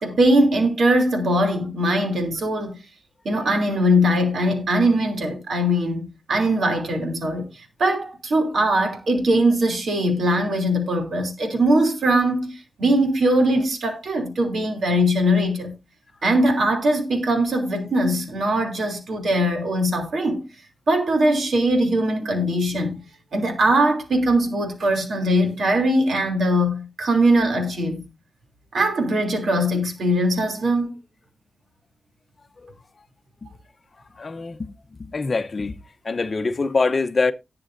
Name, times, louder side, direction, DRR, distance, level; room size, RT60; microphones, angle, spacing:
voice 1, 0.0-2.8 3.2-15.8 16.2-20.5 20.9-23.0 23.3-28.0 28.7-30.9, right 1 dB, 75° right, 2.9 m, -21 dB
voice 2, 34.1-34.7 35.0-35.8 36.0-37.3, left 3 dB, 35° left, 0.8 m, -24 dB
19.0 x 6.8 x 2.6 m
wide cardioid pair, 160°, 0 cm